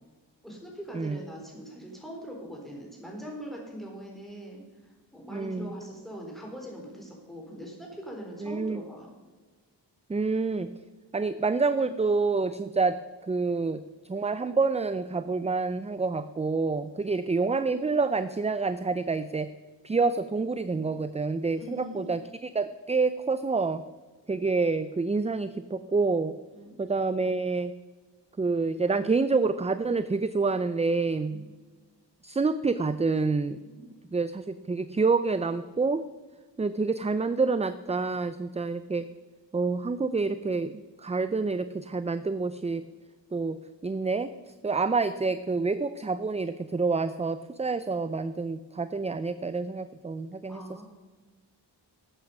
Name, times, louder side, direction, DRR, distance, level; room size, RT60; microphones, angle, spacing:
voice 1, 0.4-9.1 17.0-17.2 21.6-22.1 26.5-26.7 31.3-31.4 33.6-33.8 50.5-50.8, equal, ahead, -2 dB, 4.0 m, -42 dB
voice 2, 5.3-5.7 8.4-8.8 10.1-10.7 11.1-19.5 19.8-23.8 24.3-26.4 26.8-27.7 28.4-31.4 32.2-33.6 34.1-36.0 36.6-39.1 39.5-40.7 41.0-42.9 43.3-50.6, right 4 dB, 15° right, 13 dB, 0.3 m, -28 dB
12.5 x 8.6 x 5.4 m, 1.3 s
wide cardioid pair, 75°, 44 cm